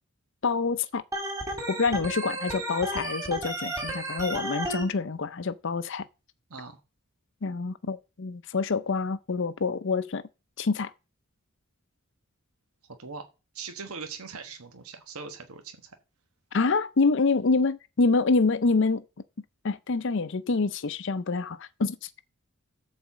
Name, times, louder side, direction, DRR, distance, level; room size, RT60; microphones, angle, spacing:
voice 1, 0.4-1.0 1.7-6.1 7.4-10.2 10.6-10.9 16.5-19.0 19.6-22.1, left 4 dB, 55° left, 0.6 m, -26 dB
Organ, 1.1-4.8, right 1 dB, 15° right, 2.5 m, -32 dB
voice 2, 6.5-6.8 13.0-13.3 13.5-15.9, right 5 dB, 85° right, 1.3 m, -40 dB
12.5 x 4.2 x 7.3 m
head